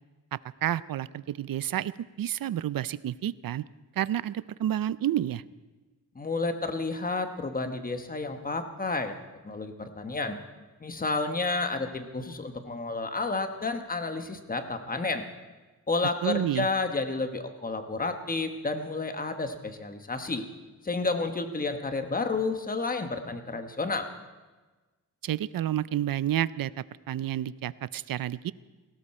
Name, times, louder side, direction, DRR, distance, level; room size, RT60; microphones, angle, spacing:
voice 1, 0.3-1.9 2.2-3.6 4.0-5.4 16.2-16.7 25.2-26.7 27.1-28.5, right 11 dB, 80° right, 18 dB, 0.5 m, -30 dB
voice 2, 6.1-9.2 9.4-10.4 10.8-15.2 15.9-20.4 20.8-24.1, left 3 dB, 25° left, 7 dB, 1.1 m, -31 dB
18.5 x 18.0 x 4.3 m, 1.2 s
wide cardioid pair, 175°, 34 cm